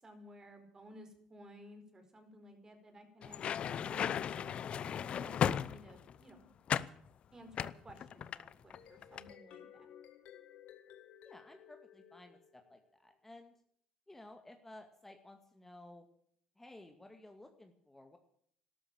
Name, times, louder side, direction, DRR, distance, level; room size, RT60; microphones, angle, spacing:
voice 1, 0.0-4.6 5.1-6.5 7.3-9.9, equal, 25° right, 6 dB, 4.7 m, -56 dB
sound 1, 3.2-6.2 6.7-7.0 7.5-8.8 9.0-9.3, left 8 dB, 50° left, 0.7 m, -35 dB
sound 2, 8.5-12.9, left 10 dB, 70° left, 2.4 m, -57 dB
voice 2, 11.2-13.5 14.1-16.1 16.6-18.2, left 1 dB, 10° left, 5 dB, 2.1 m, -55 dB
13.0 x 12.5 x 8.8 m, 0.65 s
supercardioid pair, 85°, 2 cm